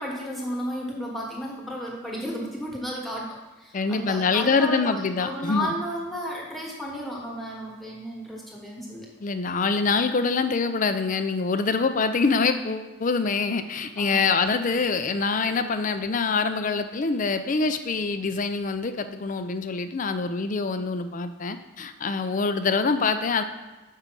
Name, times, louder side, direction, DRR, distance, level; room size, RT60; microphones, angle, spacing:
voice 1, 0.0-3.3 3.6-9.1 14.0-14.2, equal, ahead, -2 dB, 1.3 m, -33 dB
voice 2, 3.7-5.7 9.2-23.4, left 4 dB, 40° left, 9 dB, 0.4 m, -25 dB
5.5 x 5.1 x 6.1 m, 1.1 s
head